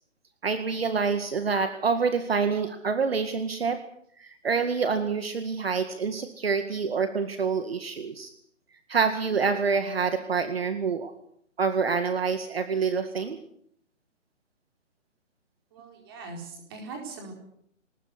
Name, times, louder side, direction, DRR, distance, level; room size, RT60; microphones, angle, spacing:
voice 1, 0.4-3.8 4.2-8.3 8.9-11.1 11.6-13.4, right 5 dB, 50° right, 8 dB, 2.1 m, -27 dB
voice 2, 15.7-17.3, right 3 dB, 20° right, 2 dB, 4.3 m, -41 dB
20.5 x 20.0 x 8.2 m, 0.67 s
hypercardioid pair, 175°, 38 cm